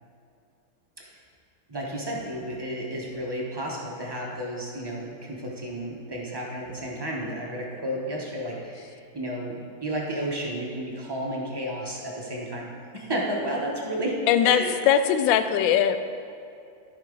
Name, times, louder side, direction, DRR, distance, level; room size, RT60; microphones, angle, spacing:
voice 1, 1.7-14.2 14.4-14.8 15.4-15.7, right 1 dB, 30° right, -3 dB, 0.4 m, -32 dB
voice 2, 14.3-16.0, left 9 dB, 75° left, 10 dB, 1.1 m, -20 dB
13.0 x 5.7 x 3.8 m, 2.5 s
omnidirectional pair, 2.3 m